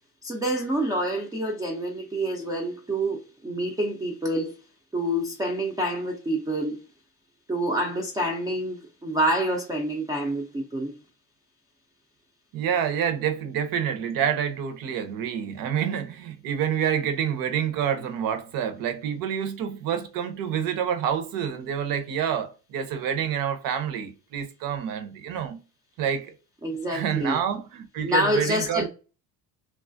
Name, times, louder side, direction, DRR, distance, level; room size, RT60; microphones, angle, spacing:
voice 1, 0.2-4.6 4.9-6.8 7.5-10.9 26.6-27.4 28.0-28.9, right 1 dB, 10° right, 0.3 m, -27 dB
voice 2, 12.5-25.6 26.0-26.3 26.9-28.9, right 8 dB, 70° right, 0.7 m, -28 dB
3.0 x 2.3 x 2.5 m
cardioid pair, 135°, 35 cm